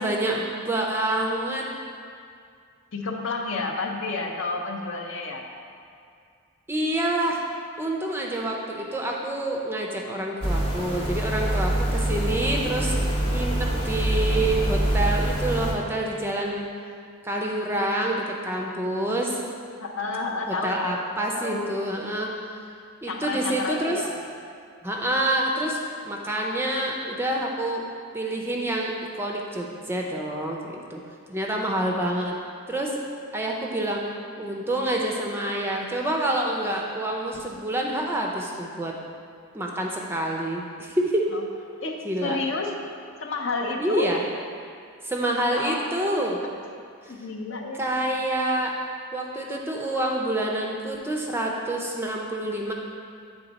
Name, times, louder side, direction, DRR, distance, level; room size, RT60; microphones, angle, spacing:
voice 1, 0.0-1.7 6.7-7.4 7.8-13.0 13.3-16.7 17.2-19.4 20.5-22.3 23.0-24.0 24.8-27.8 28.1-28.9 29.2-31.0 31.3-32.4 32.7-33.0 33.3-34.0 34.4-38.9 39.5-41.3 42.0-42.4 43.8-44.2 45.0-46.4 47.8-48.7 49.1-52.7, right 1 dB, 10° right, -1 dB, 0.4 m, -27 dB
voice 2, 2.9-5.5 19.8-21.7 23.1-24.1 41.3-41.4 41.8-42.7 43.2-44.1 45.5-46.5 47.1-47.9, left 3 dB, 60° left, 1 dB, 0.6 m, -31 dB
sound 1, 10.4-15.7, right 1 dB, 25° left, 0.8 m, -25 dB
8.9 x 3.5 x 4.0 m, 2.3 s
head